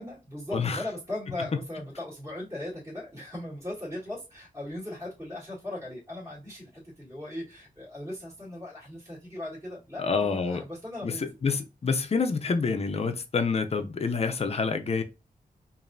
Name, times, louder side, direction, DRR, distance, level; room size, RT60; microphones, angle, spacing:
voice 1, 0.0-11.3, left 1 dB, 15° right, 1.7 m, -38 dB
voice 2, 10.0-10.6 11.0-15.0, left 4 dB, 40° left, 0.6 m, -27 dB
5.0 x 2.6 x 2.6 m
wide cardioid pair, 135°, 15 cm